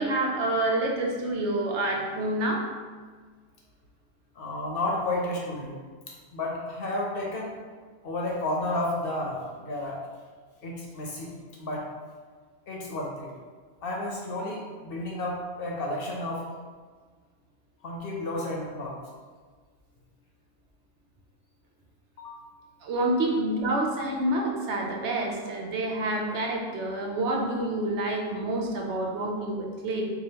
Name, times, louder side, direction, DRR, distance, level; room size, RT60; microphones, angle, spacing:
voice 1, 0.0-2.7 22.8-30.1, right 1 dB, 85° right, 0 dB, 1.0 m, -28 dB
voice 2, 4.3-5.7 6.3-7.5 8.0-10.0 10.6-11.3 11.6-11.8 12.7-13.3 13.8-16.5 17.8-18.9 22.2-22.4, left 1 dB, 60° left, -2 dB, 0.9 m, -31 dB
4.8 x 2.4 x 2.8 m, 1.5 s
omnidirectional pair, 1.1 m